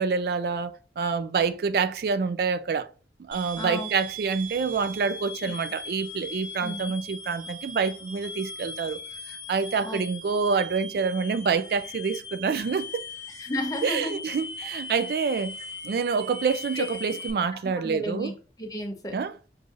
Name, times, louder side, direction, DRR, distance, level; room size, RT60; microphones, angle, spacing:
voice 1, 0.0-2.9 3.3-9.0 9.3-13.0 13.8-15.6 15.8-18.3 19.1-19.3, right 5 dB, 60° right, 0.3 m, -27 dB
sound 1, 3.3-17.3, left 1 dB, 25° right, 1.5 m, -39 dB
voice 2, 3.6-3.9 6.6-6.9 9.8-10.0 13.3-14.2 14.6-14.8 16.7-16.9 17.7-18.3 18.6-19.1, left 1 dB, 20° left, 0.7 m, -33 dB
6.1 x 2.6 x 2.5 m
head